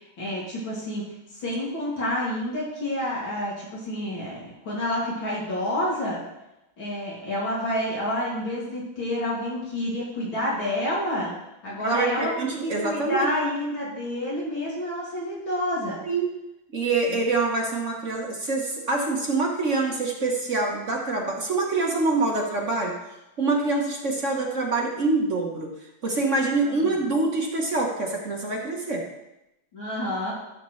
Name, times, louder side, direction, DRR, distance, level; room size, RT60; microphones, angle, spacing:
voice 1, 0.2-1.0 1.3-6.2 6.8-11.3 11.6-16.0 17.1-17.2 26.7-26.8 27.1-27.2 29.7-30.3, left 1 dB, 70° left, -6 dB, 3.1 m, -29 dB
voice 2, 11.8-13.3 16.0-16.3 16.7-22.9 23.4-25.7 26.0-29.0, right 3 dB, 45° right, 0 dB, 1.2 m, -25 dB
13.5 x 6.8 x 3.2 m, 0.93 s
omnidirectional pair, 2.3 m